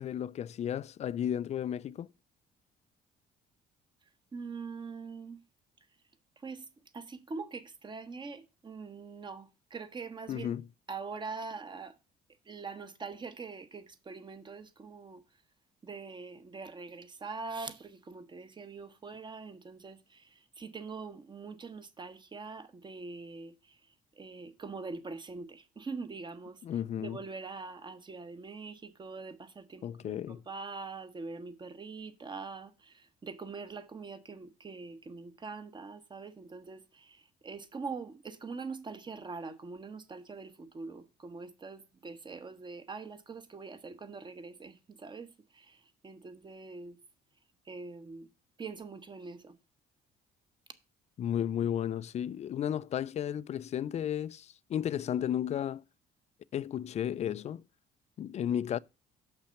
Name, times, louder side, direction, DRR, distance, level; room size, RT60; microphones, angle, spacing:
voice 1, 0.0-2.1 10.3-10.7 26.6-27.2 29.8-30.4 51.2-55.8 56.5-57.6 58.2-58.8, left 10 dB, 40° left, 0.4 m, -33 dB
voice 2, 4.3-5.4 6.4-6.7 6.9-10.6 10.9-11.9 12.5-15.2 15.8-23.8 24.2-26.6 27.0-47.0 47.7-48.3 48.6-49.6, right 4 dB, 25° right, 1.1 m, -43 dB
6.7 x 5.8 x 5.7 m
cardioid pair, 110°, 17 cm